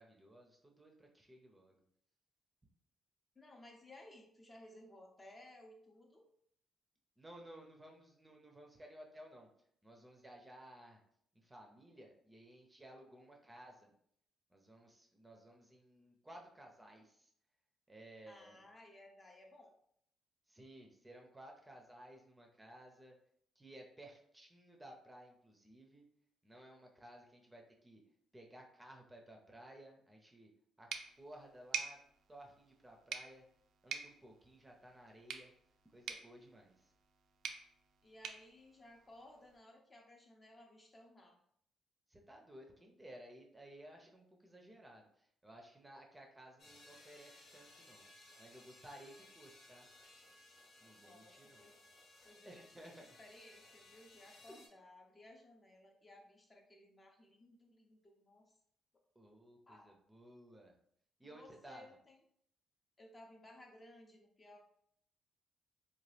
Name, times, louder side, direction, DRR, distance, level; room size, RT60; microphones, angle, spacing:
voice 1, 0.0-1.8 7.2-9.5 9.8-11.0 11.3-13.9 14.5-17.3 17.9-18.7 20.5-23.2 23.6-26.0 26.4-28.0 28.3-30.5 30.8-30.9 31.2-32.0 32.3-33.4 33.8-35.5 35.8-36.9 42.1-48.0 48.4-49.9 50.8-51.7 52.4-53.2 54.5-54.6 59.2-60.7 61.2-61.8, right 1 dB, 15° right, 1 dB, 0.6 m, -57 dB
voice 2, 3.4-6.2 18.3-19.7 38.0-41.4 51.0-51.8 52.2-52.9 53.2-58.4 59.7-60.0 61.3-62.2 63.0-64.6, left 1 dB, 30° left, 1 dB, 0.6 m, -59 dB
sound 1, 30.9-39.6, right 6 dB, 75° right, 0.4 m, -48 dB
sound 2, 46.6-54.7, left 2 dB, 60° left, 0.9 m, -61 dB
2.8 x 2.3 x 3.2 m, 0.67 s
cardioid pair, 90°, 0 cm